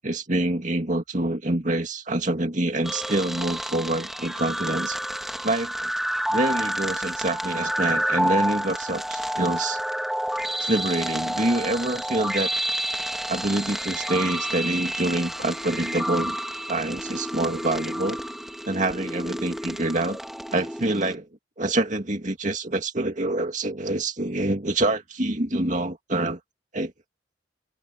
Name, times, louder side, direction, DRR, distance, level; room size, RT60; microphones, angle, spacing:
voice 1, 0.0-5.0 5.4-5.9 6.3-9.8 10.6-12.5 13.3-16.4 16.7-18.2 18.7-20.2 20.5-21.3 21.6-26.4 26.7-26.9, right 2 dB, 40° right, 2.2 m, -26 dB
sound 1, 2.8-21.1, equal, ahead, 1.6 m, -29 dB
open air
head